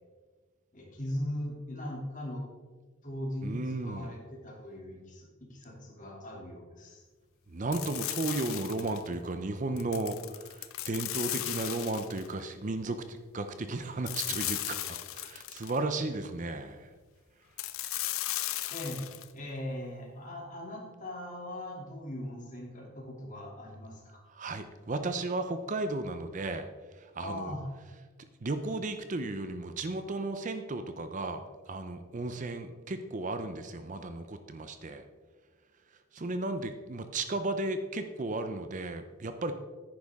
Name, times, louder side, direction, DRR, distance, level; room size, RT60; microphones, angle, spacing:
voice 1, 0.7-2.4 3.0-7.0 18.7-19.0 19.3-24.2 27.2-27.7, left 1 dB, 40° left, -2 dB, 2.6 m, -39 dB
voice 2, 3.4-4.1 7.5-16.9 24.3-26.7 26.9-27.5 28.4-35.0 36.1-39.5, right 2 dB, 35° right, 8 dB, 0.6 m, -34 dB
sound 1, 7.7-9.1 9.8-12.3 14.1-15.8 17.6-19.3, left 14 dB, 80° left, 0.6 m, -36 dB
10.5 x 9.7 x 3.6 m, 1.4 s
head